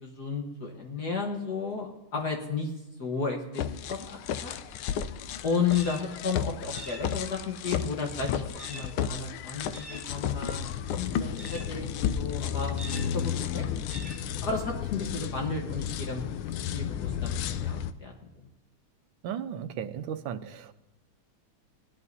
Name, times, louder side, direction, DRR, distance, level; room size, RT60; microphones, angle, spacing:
voice 1, 0.0-2.7 3.0-3.6 3.9-4.5 5.4-13.6 14.4-16.2 16.7-18.1 18.4-18.5, left 5 dB, 55° left, 1 dB, 1.7 m, -33 dB
sound 1, 3.6-17.9, left 9 dB, 85° left, 1.5 m, -33 dB
sound 2, 5.7-6.0 6.7-7.1 8.6-8.9 9.7-10.1 11.4-11.7 12.8-13.1 13.9-14.2, right 2 dB, 20° right, 2.7 m, -44 dB
voice 2, 19.2-20.7, right 8 dB, 75° right, 10 dB, 1.4 m, -35 dB
19.0 x 11.0 x 2.7 m, 0.95 s
omnidirectional pair, 2.3 m